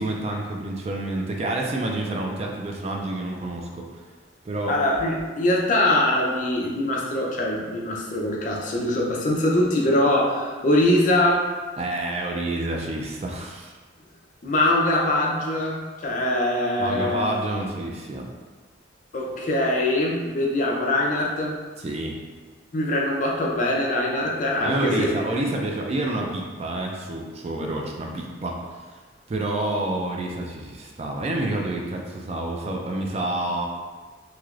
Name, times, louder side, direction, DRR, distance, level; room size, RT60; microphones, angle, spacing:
voice 1, 0.0-3.9 4.4-4.8 11.8-13.7 16.8-18.3 21.8-22.1 24.6-29.0 29.3-33.7, right 2 dB, 35° right, 0 dB, 0.3 m, -28 dB
voice 2, 4.7-11.4 14.4-17.2 19.1-21.6 22.7-25.1, left 1 dB, 40° left, -2 dB, 0.5 m, -23 dB
3.1 x 2.8 x 2.4 m, 1.4 s
head